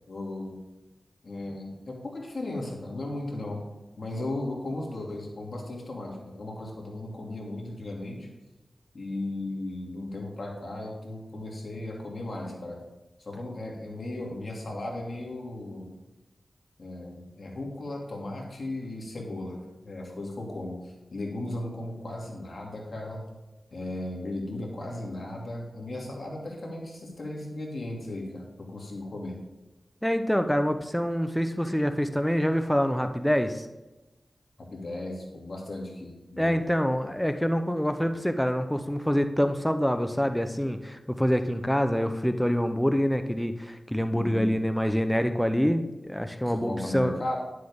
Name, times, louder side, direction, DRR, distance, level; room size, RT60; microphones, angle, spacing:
voice 1, 0.1-0.6 1.2-3.6 4.0-8.3 8.9-12.8 13.2-16.0 16.8-23.2 23.7-29.4 34.7-36.6 44.1-44.5 46.5-47.4, left 1 dB, 65° left, -1 dB, 2.7 m, -36 dB
voice 2, 30.0-33.7 36.4-47.1, equal, 5° left, 8 dB, 0.8 m, -26 dB
10.5 x 7.8 x 3.7 m, 1.1 s
cardioid pair, 40°, 0 cm